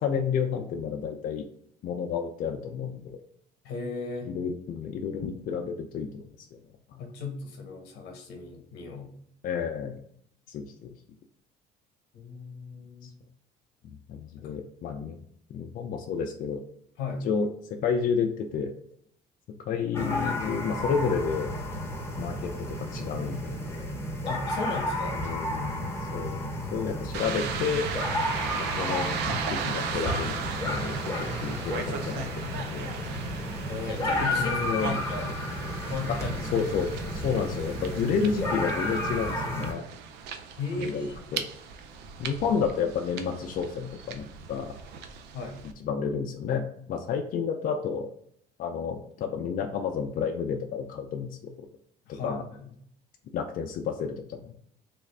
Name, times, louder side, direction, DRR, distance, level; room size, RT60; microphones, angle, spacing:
voice 1, 0.0-1.5 1.8-3.2 4.3-6.6 6.9-7.0 9.4-10.0 10.5-10.9 13.8-15.2 15.5-16.6 17.2-18.7 19.7-21.5 22.2-23.6 25.2-27.8 28.5-29.1 29.5-33.0 34.3-34.9 36.1-36.2 36.5-39.9 40.8-41.4 42.2-44.7 45.8-48.1 48.6-51.5 52.1-52.4 53.3-54.5, left 6 dB, 55° left, 3 dB, 0.4 m, -31 dB
voice 2, 3.6-4.3 7.0-9.1 12.1-13.1 14.4-14.6 17.0-17.3 24.2-25.2 33.7-35.3 35.8-36.4 40.5-41.2 45.3-45.7 52.1-52.7, left 3 dB, 85° left, 4 dB, 0.9 m, -36 dB
sound 1, 19.9-39.7, left 1 dB, 15° left, 0.8 m, -32 dB
sound 2, 27.1-45.7, right 6 dB, 85° right, 0.5 m, -37 dB
3.3 x 2.4 x 3.3 m, 0.67 s
cardioid pair, 110°, 17 cm